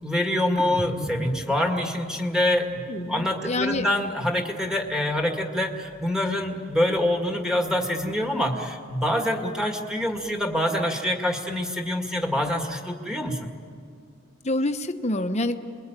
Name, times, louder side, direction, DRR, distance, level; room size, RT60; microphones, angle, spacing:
voice 1, 0.0-13.5, left 1 dB, 5° right, 2 dB, 2.0 m, -26 dB
sound 1, 0.5-4.1 4.4-6.3 6.5-8.4 8.7-10.6, equal, 40° right, 4.3 m, -43 dB
voice 2, 2.9-3.9 14.4-15.6, left 2 dB, 30° left, 7 dB, 1.0 m, -27 dB
27.5 x 22.0 x 9.1 m, 2.3 s
head